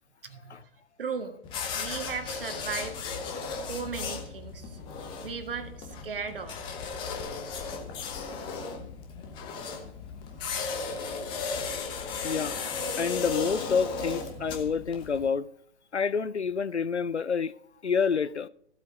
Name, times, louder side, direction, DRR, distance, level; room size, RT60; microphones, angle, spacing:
voice 1, 0.2-0.6 1.0-1.4 1.8-3.0 3.7-4.8 5.2-6.6, right 5 dB, 55° right, 1.6 m, -36 dB
sound 1, 1.4-15.3, left 5 dB, 15° left, 1.1 m, -35 dB
voice 2, 12.2-12.6 13.0-15.5 15.9-17.5 17.8-18.5, left 6 dB, 85° left, 0.6 m, -28 dB
14.5 x 8.3 x 4.0 m
figure-of-eight pair, 125°, 33 cm